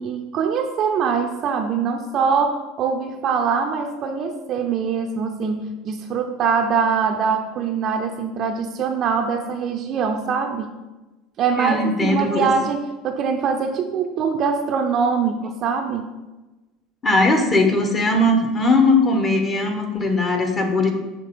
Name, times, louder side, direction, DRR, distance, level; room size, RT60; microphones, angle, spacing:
voice 1, 0.0-10.7 11.4-16.1, right 6 dB, 50° right, 4 dB, 0.5 m, -23 dB
voice 2, 11.6-12.5 17.0-20.9, left 2 dB, 30° left, 4 dB, 1.0 m, -19 dB
6.6 x 3.0 x 5.2 m, 1.1 s
hypercardioid pair, 90°, 0 cm